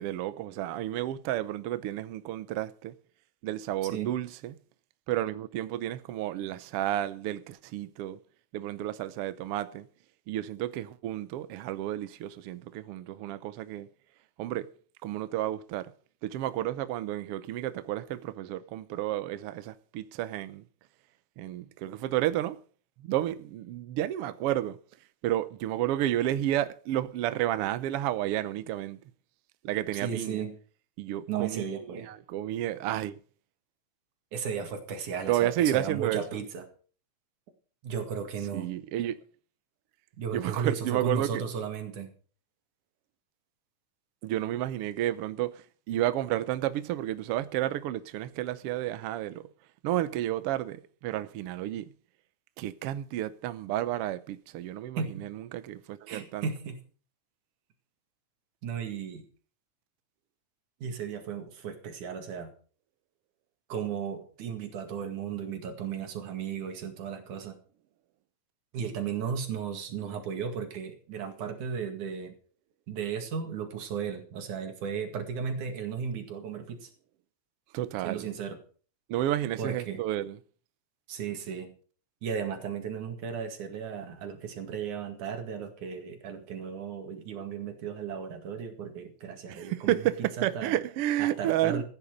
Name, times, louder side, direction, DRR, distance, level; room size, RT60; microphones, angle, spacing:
voice 1, 0.0-2.9 3.4-4.5 5.1-8.2 8.5-9.9 10.3-13.9 14.4-14.7 15.0-15.9 16.2-20.6 21.4-22.6 23.0-24.8 25.2-29.0 29.6-30.4 31.0-31.6 31.9-33.2 35.3-36.4 38.5-39.2 40.3-41.4 44.2-49.5 49.8-51.9 52.6-56.5 77.7-78.3 79.1-80.4 89.5-91.8, right 13 dB, 70° right, 1.5 m, -31 dB
voice 2, 30.0-30.5 31.3-32.1 34.3-36.7 37.8-38.7 40.2-42.1 55.0-55.3 56.1-56.8 58.6-59.3 60.8-62.5 63.7-67.6 68.7-72.4 72.9-76.9 78.0-78.6 79.6-80.0 81.1-81.7 82.2-90.1 90.6-90.7 91.2-91.8, right 7 dB, 90° right, 3.6 m, -35 dB
15.0 x 10.0 x 5.1 m
omnidirectional pair, 3.4 m